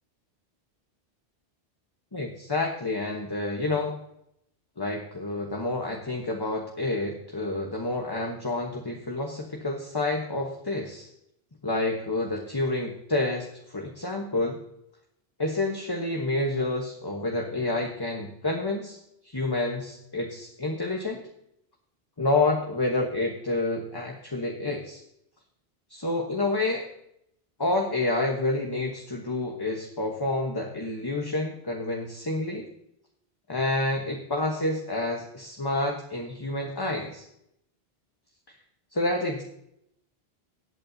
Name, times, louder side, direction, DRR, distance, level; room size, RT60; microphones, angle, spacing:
voice 1, 2.1-3.9 4.8-11.1 11.6-14.6 15.4-19.0 19.2-21.2 22.2-25.0 25.9-26.9 27.6-32.7 33.5-37.3 38.9-39.4, left 2 dB, 25° left, 1 dB, 1.2 m, -29 dB
18.5 x 8.7 x 2.8 m, 0.76 s
omnidirectional pair, 1.1 m